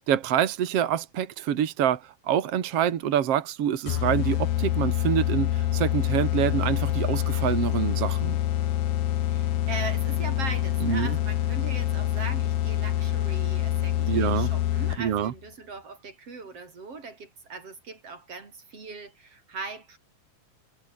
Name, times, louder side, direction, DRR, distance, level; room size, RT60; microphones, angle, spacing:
voice 1, 0.0-8.4 10.8-11.1 14.1-14.5 15.0-15.3, right 10 dB, 70° right, 1.4 m, -26 dB
sound 1, 3.9-15.2, left 12 dB, 80° left, 1.7 m, -26 dB
voice 2, 9.3-20.0, right 4 dB, 30° right, 5.7 m, -39 dB
omnidirectional pair, 5.4 m